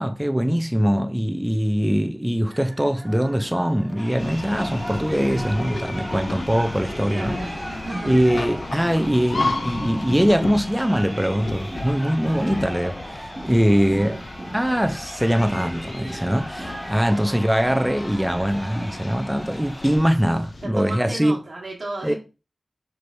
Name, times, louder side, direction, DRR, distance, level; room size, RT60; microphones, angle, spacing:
voice 1, 0.0-7.4 8.0-14.2 14.5-21.4 22.0-22.1, equal, 5° right, 0.4 m, -22 dB
sound 1, 2.5-19.4, right 1 dB, 25° right, 1.1 m, -37 dB
Crowd, 3.9-20.0, equal, 15° left, 1.7 m, -39 dB
sound 2, 4.2-20.7, left 3 dB, 85° left, 0.4 m, -34 dB
voice 2, 7.1-8.2 14.0-14.2 17.1-17.4 20.6-22.2, right 2 dB, 80° right, 1.2 m, -34 dB
4.5 x 3.2 x 2.5 m
wide cardioid pair, 65°, 0 cm